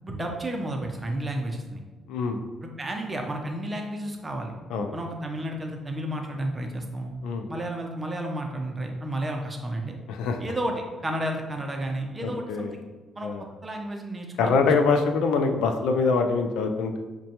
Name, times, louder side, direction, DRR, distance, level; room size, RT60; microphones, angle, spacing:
voice 1, 0.0-1.8 2.6-4.5 4.9-7.1 7.5-10.0 10.4-12.8 13.2-13.3 13.6-14.7, right 1 dB, 20° right, 2 dB, 0.6 m, -32 dB
voice 2, 2.1-2.4 4.7-4.9 7.2-7.5 10.1-10.4 12.2-12.7 13.2-13.4 14.4-17.0, left 4 dB, 90° left, 5 dB, 0.4 m, -24 dB
6.1 x 2.2 x 2.9 m, 1.3 s
cardioid pair, 90°, 0 cm